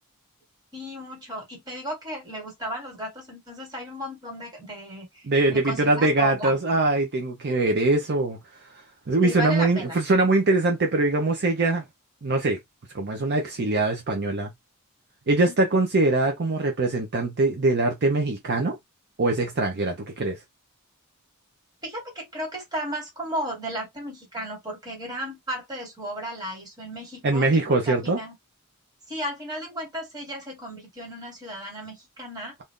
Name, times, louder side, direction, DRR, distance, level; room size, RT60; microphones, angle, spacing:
voice 1, 0.7-5.1 5.5-6.8 9.2-9.9 15.5-15.6 21.8-28.4 29.1-32.6, equal, 20° right, 1.7 m, -35 dB
voice 2, 5.2-8.4 9.1-11.8 12.2-12.6 12.9-14.5 15.3-18.8 19.2-20.4 27.2-28.2, right 2 dB, 50° right, 0.7 m, -22 dB
2.6 x 2.5 x 3.6 m
head